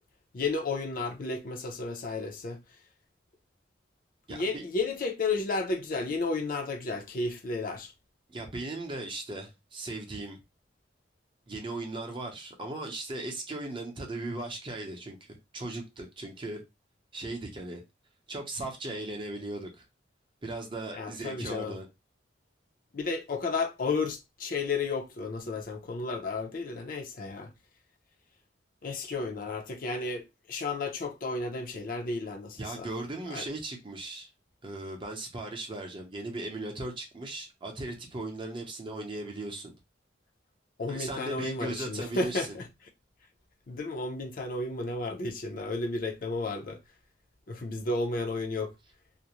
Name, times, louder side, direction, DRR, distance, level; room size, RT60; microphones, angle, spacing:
voice 1, 0.3-2.6 4.3-7.9 21.0-21.8 22.9-27.5 28.8-32.9 33.3-33.5 40.8-42.7 43.7-46.8 47.5-48.7, left 3 dB, 50° left, 0.5 m, -32 dB
voice 2, 4.3-4.6 8.3-10.4 11.5-15.2 15.5-16.6 17.1-17.8 18.3-19.8 20.4-21.9 32.6-34.3 34.6-39.7 40.9-42.6, right 2 dB, 30° right, 0.6 m, -37 dB
2.5 x 2.0 x 2.9 m
head